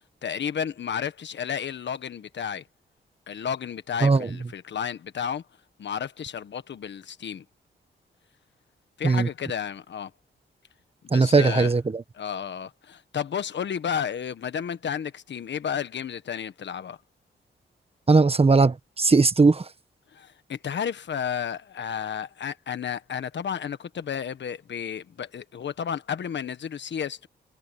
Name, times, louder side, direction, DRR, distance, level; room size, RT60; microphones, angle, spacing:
voice 1, 0.2-2.6 3.3-5.4 5.8-7.4 9.0-10.1 11.0-11.7 12.2-17.0 20.1-27.3, left 8 dB, 70° left, 1.4 m, -32 dB
voice 2, 11.1-12.0 18.1-19.7, right 4 dB, 30° right, 1.3 m, -19 dB
cardioid pair, 80°, 19 cm